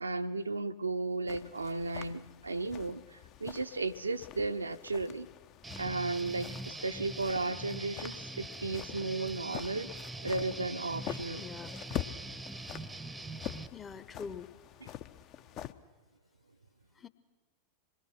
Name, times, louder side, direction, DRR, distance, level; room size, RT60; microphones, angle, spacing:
voice 1, 0.0-5.3 5.8-9.9 10.2-11.4, right 3 dB, 80° right, 0.8 m, -34 dB
sound 1, 1.3-15.7, left 11 dB, 40° left, 0.8 m, -45 dB
Guitar, 5.6-13.7, right 2 dB, 5° right, 0.8 m, -43 dB
voice 2, 11.4-11.7 13.7-14.5 16.9-17.1, left 6 dB, 20° left, 1.0 m, -44 dB
26.0 x 21.5 x 6.0 m
figure-of-eight pair, 90°, 0 cm